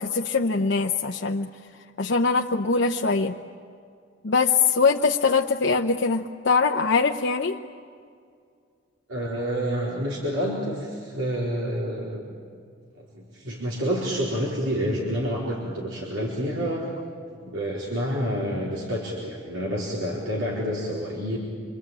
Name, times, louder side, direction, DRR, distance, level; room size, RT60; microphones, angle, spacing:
voice 1, 0.0-1.5 2.0-3.4 4.2-7.6, left 4 dB, 60° left, 1 dB, 0.8 m, -22 dB
voice 2, 9.1-12.2 13.1-16.9 17.4-21.4, equal, 80° right, -4 dB, 4.3 m, -28 dB
27.0 x 24.0 x 9.0 m, 2.3 s
head